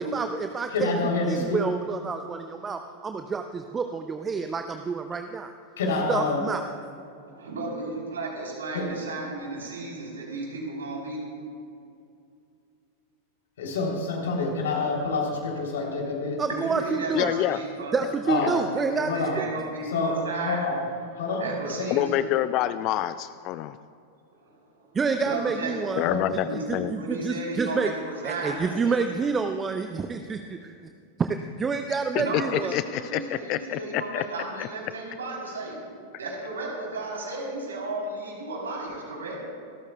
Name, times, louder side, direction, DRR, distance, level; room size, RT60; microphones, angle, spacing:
voice 1, 0.0-0.9 1.3-5.5 6.1-6.6 16.4-17.3 17.9-19.1 19.4-19.5 24.9-26.0 26.3-26.4 26.7-27.9 28.2-30.9 31.2-32.8, right 5 dB, 20° right, 7 dB, 0.5 m, -28 dB
voice 2, 0.7-1.6 5.8-6.5 8.7-8.9 13.6-16.4 18.3-18.6 19.0-19.4 19.8-20.8 21.1-21.5 21.8-21.9 26.0-26.2, left 3 dB, 60° left, -1 dB, 3.3 m, -27 dB
voice 3, 7.4-11.2 16.5-18.1 18.7-20.7 21.4-22.1 24.4-24.5 25.2-25.7 26.4-26.6 26.9-29.2 32.1-35.8 36.2-39.4, right 2 dB, 70° right, -2 dB, 3.7 m, -34 dB
voice 4, 17.1-17.6 21.9-23.8 26.0-26.9 32.1-34.2 34.6-34.7, left 13 dB, 40° left, 13 dB, 0.3 m, -27 dB
26.5 x 13.0 x 2.3 m, 2.5 s
figure-of-eight pair, 90°, 0 cm